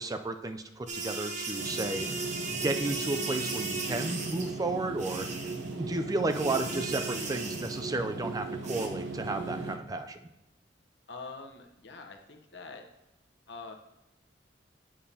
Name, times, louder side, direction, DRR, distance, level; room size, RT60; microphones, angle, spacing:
voice 1, 0.0-2.3 2.6-5.3 5.8-10.3, right 2 dB, 20° right, 8 dB, 0.4 m, -33 dB
sound 1, 0.9-4.5 5.0-5.7 6.3-7.9 8.6-8.9, right 3 dB, 45° right, 1.0 m, -36 dB
sound 2, 1.6-9.8, right 3 dB, 85° right, 0.8 m, -38 dB
voice 2, 11.1-12.8 13.5-13.7, left 4 dB, 70° left, 4 dB, 0.9 m, -44 dB
8.5 x 7.2 x 2.8 m, 0.95 s
head